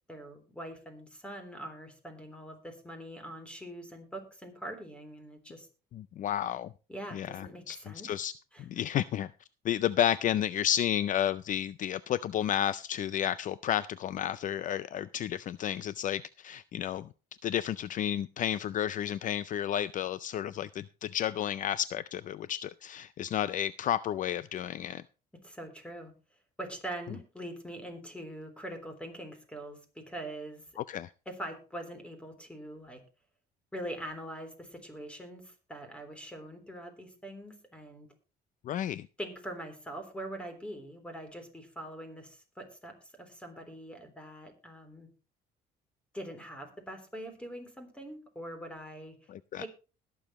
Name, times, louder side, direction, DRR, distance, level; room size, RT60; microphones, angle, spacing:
voice 1, 0.1-5.7 6.9-8.1 8.5-8.6 25.4-26.1 26.6-30.6 31.3-33.0 33.7-38.1 39.2-45.1 46.1-49.2 49.5-49.7, right 1 dB, 5° left, 6 dB, 3.4 m, -43 dB
voice 2, 5.9-6.7 7.1-7.8 8.0-8.3 8.6-9.3 9.6-17.1 17.4-25.0 30.8-31.1 38.6-39.1 49.3-49.7, left 10 dB, 50° left, 17 dB, 0.4 m, -31 dB
20.5 x 7.1 x 3.1 m, 0.33 s
cardioid pair, 110°, 17 cm